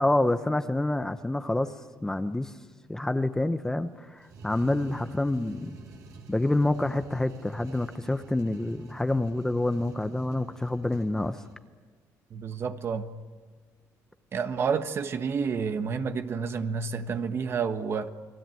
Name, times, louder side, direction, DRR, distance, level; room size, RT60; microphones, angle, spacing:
voice 1, 0.0-1.7 2.0-2.5 2.9-5.8 6.3-11.4, left 2 dB, 10° left, 0.9 m, -27 dB
sound 1, 4.2-11.6, right 4 dB, 65° right, 4.7 m, -49 dB
voice 2, 12.3-13.1 14.3-18.1, right 6 dB, 40° right, 1.5 m, -29 dB
29.5 x 21.0 x 9.3 m
cardioid pair, 130°, 6 cm